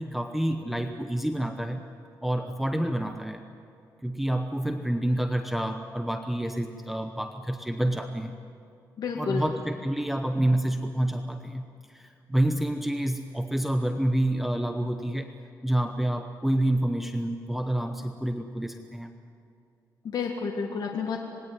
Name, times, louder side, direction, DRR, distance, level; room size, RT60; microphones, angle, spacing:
voice 1, 0.0-1.8 2.2-3.4 4.0-8.4 9.2-15.3 15.6-19.1, right 1 dB, 5° right, 6 dB, 0.9 m, -28 dB
voice 2, 9.0-9.4 20.0-21.2, left 6 dB, 60° left, 1 dB, 2.0 m, -30 dB
26.0 x 20.0 x 9.4 m, 2.5 s
wide cardioid pair, 150°, 8 cm